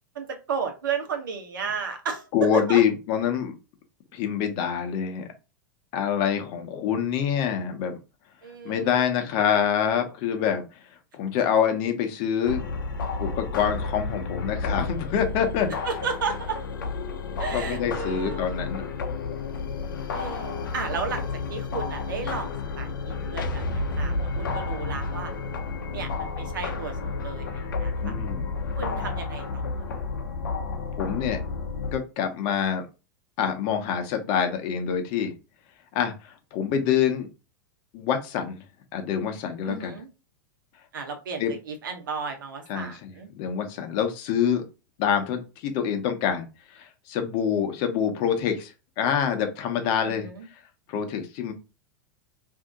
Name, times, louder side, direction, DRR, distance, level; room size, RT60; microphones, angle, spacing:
voice 1, 0.1-2.3 2.5-2.8 8.4-8.9 15.8-16.6 17.4-18.5 20.1-22.5 22.8-25.3 25.9-28.1 28.8-29.7 39.7-40.1 40.9-43.3 50.0-50.5, right 5 dB, 85° right, 5 dB, 0.9 m, -33 dB
voice 2, 2.3-3.5 4.1-5.2 5.9-8.0 8.6-10.6 11.1-12.7 13.2-15.9 17.5-18.9 28.0-28.5 30.9-31.4 31.9-32.8 33.4-35.3 35.9-37.3 37.9-38.6 38.9-40.0 41.4-41.5 42.7-44.6 45.0-46.5 46.7-50.3 50.9-51.5, left 8 dB, 50° left, 6 dB, 0.9 m, -26 dB
sound 1, 12.5-32.0, left 4 dB, 85° left, 0.7 m, -31 dB
2.7 x 2.6 x 3.7 m, 0.30 s
hypercardioid pair, 105°, 11 cm